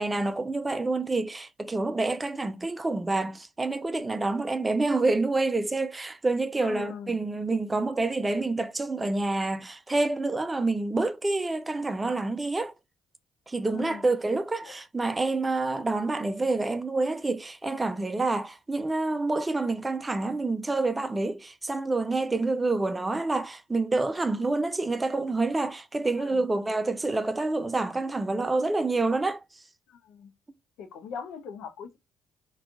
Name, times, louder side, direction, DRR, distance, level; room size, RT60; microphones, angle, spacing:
voice 1, 0.0-12.7 13.5-29.4, right 3 dB, 25° right, 0.4 m, -27 dB
voice 2, 6.6-7.2 13.7-14.1 14.6-14.8 26.2-26.5 29.9-30.3 30.8-32.0, left 6 dB, 75° left, 0.6 m, -41 dB
3.7 x 2.3 x 2.3 m
supercardioid pair, 55°, 0 cm